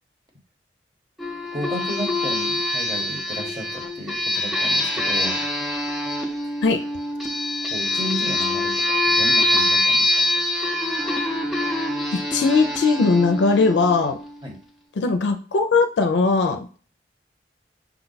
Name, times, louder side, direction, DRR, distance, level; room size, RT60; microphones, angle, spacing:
sound 1, 1.2-14.4, left 1 dB, ahead, 0.5 m, -24 dB
voice 1, 1.5-5.4 6.4-6.5 7.6-10.3 14.4-14.6, equal, 20° right, -1 dB, 1.0 m, -33 dB
voice 2, 12.1-14.2 15.0-16.8, left 4 dB, 85° left, 6 dB, 0.4 m, -19 dB
5.8 x 2.3 x 3.9 m, 0.42 s
head